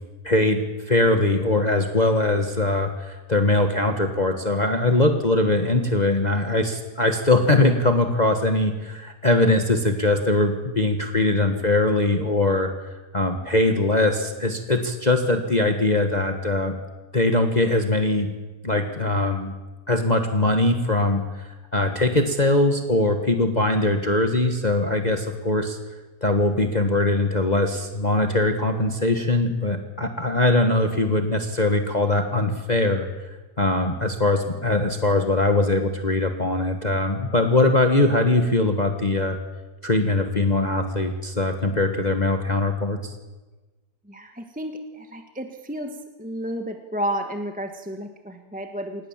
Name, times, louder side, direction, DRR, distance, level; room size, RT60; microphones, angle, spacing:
voice 1, 0.2-0.6 0.9-12.7 13.1-16.7 17.1-18.3 18.6-19.5 19.9-25.8 26.2-33.1 33.6-39.4 39.8-43.1, left 2 dB, 25° left, 5 dB, 1.6 m, -21 dB
voice 2, 44.1-49.1, equal, 5° right, 5 dB, 1.2 m, -32 dB
26.5 x 19.0 x 7.5 m, 1.2 s
omnidirectional pair, 1.8 m